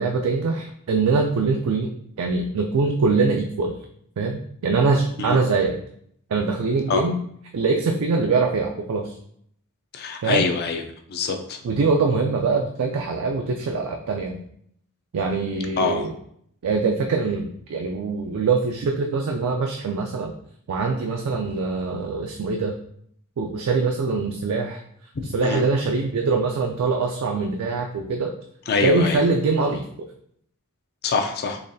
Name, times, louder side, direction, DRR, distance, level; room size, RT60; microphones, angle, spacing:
voice 1, 0.0-1.9 2.2-3.7 4.2-5.8 6.3-7.2 7.5-9.1 10.2-10.5 11.6-14.4 15.1-16.1 16.6-20.3 20.7-22.7 23.4-24.8 25.3-28.3 28.8-29.8, right 4 dB, 75° right, 2 dB, 0.4 m, -23 dB
voice 2, 9.9-10.8 11.1-11.6 15.8-16.1 25.4-25.6 28.7-29.2 31.0-31.6, left 4 dB, 50° left, 5 dB, 0.4 m, -24 dB
4.0 x 3.0 x 2.6 m, 0.68 s
head